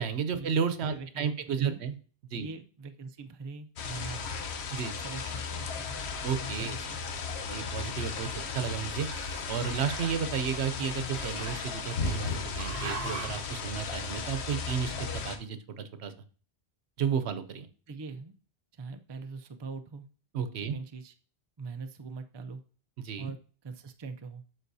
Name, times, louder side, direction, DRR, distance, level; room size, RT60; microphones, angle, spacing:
voice 1, 0.0-1.9 2.3-2.5 4.7-4.9 6.2-6.8 7.5-8.3 8.5-9.1 9.5-16.1 17.0-17.7 20.3-20.8 23.0-23.3, right 7 dB, 90° right, 11 dB, 1.0 m, -32 dB
voice 2, 0.8-1.8 2.4-4.4 5.0-6.0 6.6-7.0 17.9-18.3 18.7-20.1 20.7-21.1 21.6-22.6 23.2-24.4, right 4 dB, 35° right, 7 dB, 0.5 m, -42 dB
sound 1, 3.8-15.4, left 5 dB, 85° left, 1.1 m, -35 dB
Growling, 7.3-8.6 8.9-10.3 11.1-12.1 12.6-13.5, right 5 dB, 60° right, 1.1 m, -43 dB
11.0 x 4.1 x 2.7 m, 0.40 s
omnidirectional pair, 1.1 m